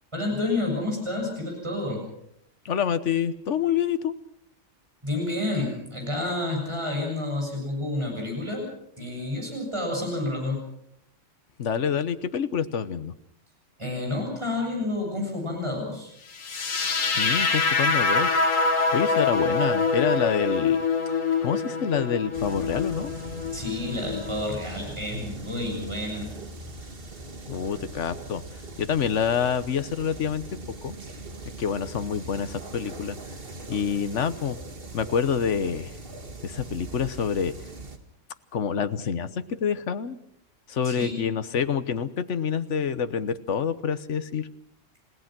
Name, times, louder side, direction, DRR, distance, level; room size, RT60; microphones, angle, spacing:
voice 1, 0.1-2.0 5.0-8.7 9.0-10.6 13.8-16.1 23.5-26.3 40.8-41.3, left 2 dB, 20° right, 0 dB, 7.4 m, -29 dB
voice 2, 2.6-4.1 11.6-13.1 17.1-18.4 18.9-23.1 27.5-28.4 28.8-30.4 30.8-30.9 31.6-33.2 33.7-34.6 34.9-35.9 36.4-37.5 38.5-40.2 40.7-44.5, left 7 dB, 70° left, 12 dB, 1.4 m, -27 dB
sound 1, 16.4-24.4, left 4 dB, 90° left, 1.9 m, -25 dB
sound 2, 22.3-38.0, right 2 dB, 45° right, 2.0 m, -41 dB
29.5 x 17.5 x 6.0 m, 0.75 s
omnidirectional pair, 1.3 m